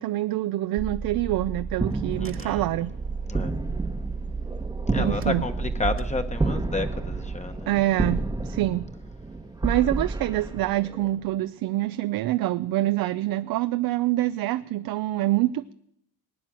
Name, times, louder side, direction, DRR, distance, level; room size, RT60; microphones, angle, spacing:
voice 1, 0.0-2.9 4.9-5.5 7.7-8.9 9.6-15.7, right 15 dB, 65° right, 0.6 m, -26 dB
Car / Engine, 0.8-7.4, right 4 dB, 35° right, 1.4 m, -33 dB
sound 1, 1.8-11.3, right 2 dB, 10° right, 1.0 m, -31 dB
voice 2, 2.2-2.6 3.3-3.5 4.9-7.7, left 3 dB, 20° left, 1.1 m, -31 dB
19.0 x 9.1 x 7.6 m
cardioid pair, 120°, 38 cm